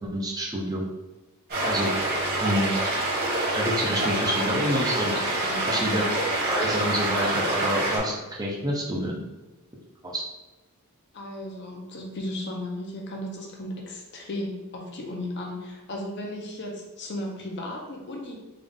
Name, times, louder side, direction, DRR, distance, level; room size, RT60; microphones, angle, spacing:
voice 1, 0.0-0.8 1.7-1.9 2.4-2.8 3.5-5.4 5.7-6.0 6.5-9.2 10.0-10.2, equal, 15° right, -2 dB, 0.6 m, -28 dB
sound 1, 1.5-8.0, right 1 dB, 45° right, 1.4 m, -26 dB
voice 2, 11.1-18.4, left 1 dB, 50° left, 0 dB, 0.7 m, -35 dB
3.8 x 2.5 x 3.5 m, 1.1 s
head